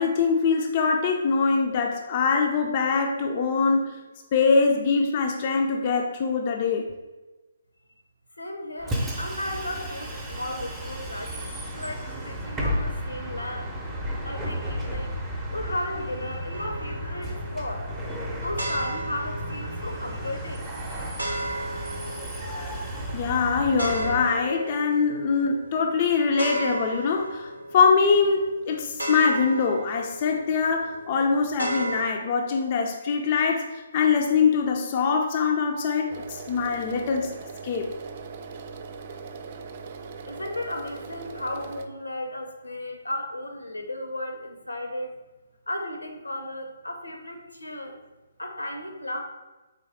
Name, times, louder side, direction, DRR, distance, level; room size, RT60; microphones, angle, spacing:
voice 1, 0.0-4.0 4.3-6.9 23.1-37.3 37.6-37.9, left 5 dB, 35° left, 2 dB, 0.4 m, -23 dB
voice 2, 8.4-13.7 14.2-15.2 15.5-17.8 18.3-21.2 40.3-45.2 45.7-48.0 48.4-49.2, left 1 dB, 80° left, 4 dB, 0.7 m, -35 dB
Bus, 8.8-24.2, equal, 10° right, 0.7 m, -33 dB
sound 1, 16.5-32.1, right 1 dB, 85° right, 0.7 m, -36 dB
sound 2, 36.1-41.9, right 5 dB, 40° right, 0.3 m, -40 dB
4.3 x 3.3 x 3.2 m, 1.1 s
figure-of-eight pair, 135°, 0 cm